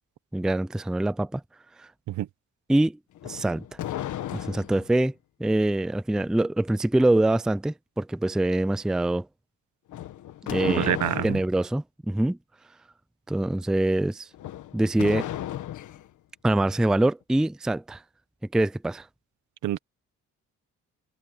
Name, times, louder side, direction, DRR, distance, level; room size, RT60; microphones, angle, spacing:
voice 1, 0.3-1.4 1.8-1.9 2.7-3.6 4.3-5.1 5.4-9.3 10.4-11.0 11.2-12.4 13.3-14.3 14.7-15.3 16.4-18.0 18.5-19.1, right 1 dB, ahead, 0.4 m, -24 dB
sound 1, 3.2-4.9 9.9-11.5 14.3-16.1, left 12 dB, 80° left, 1.7 m, -35 dB
voice 2, 10.6-11.4 19.6-19.8, right 13 dB, 75° right, 1.2 m, -26 dB
open air
cardioid pair, 90°, 30 cm